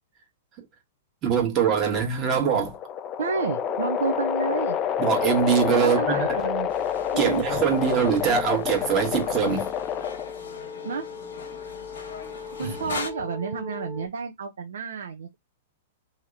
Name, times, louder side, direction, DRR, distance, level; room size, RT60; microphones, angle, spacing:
voice 1, 1.2-2.7 5.0-6.4 7.2-9.7 12.6-12.7, right 7 dB, 35° right, 1.3 m, -23 dB
sound 1, 2.2-10.5, left 9 dB, 30° left, 0.4 m, -28 dB
voice 2, 3.2-4.8 5.8-6.7 7.1-7.4 10.8-11.1 12.6-15.3, right 5 dB, 75° right, 0.6 m, -30 dB
sound 2, 3.6-14.1, left 5 dB, ahead, 0.8 m, -39 dB
sound 3, 6.7-13.1, left 5 dB, 70° left, 1.0 m, -40 dB
2.9 x 2.8 x 3.6 m
hypercardioid pair, 105°, 0 cm